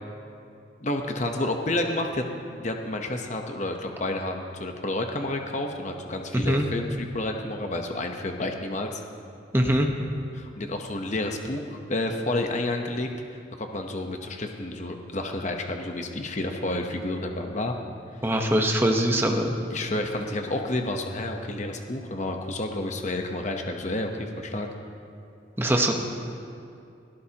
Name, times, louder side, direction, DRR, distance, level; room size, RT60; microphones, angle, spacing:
voice 1, 0.8-2.2 2.5-9.0 10.3-13.1 13.6-17.7 19.7-24.7, left 2 dB, 40° left, 3 dB, 1.0 m, -30 dB
voice 2, 9.5-9.9 18.2-19.6 25.6-25.9, right 1 dB, 10° right, 2 dB, 1.1 m, -22 dB
20.5 x 17.5 x 2.9 m, 2.6 s
head